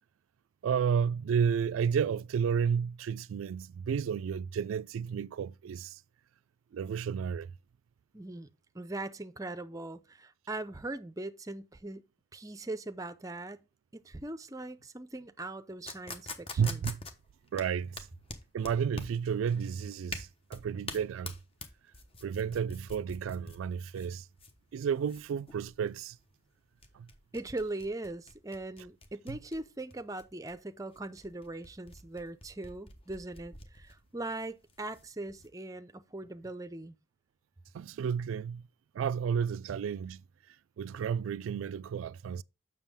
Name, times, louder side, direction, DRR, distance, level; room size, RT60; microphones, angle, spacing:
voice 1, 0.6-6.0 6.7-7.5 16.6-17.0 17.5-18.1 18.5-21.3 22.2-24.3 24.7-26.2 26.9-27.1 29.3-29.4 37.7-38.6 38.9-40.2 40.8-42.4, right 7 dB, 80° right, 0.3 m, -32 dB
voice 2, 8.1-8.5 8.7-12.0 12.3-13.6 13.9-16.9 27.3-37.0, right 2 dB, 15° right, 0.5 m, -40 dB
sound 1, 15.9-35.5, left 3 dB, 30° left, 1.0 m, -46 dB
7.2 x 6.1 x 3.5 m
head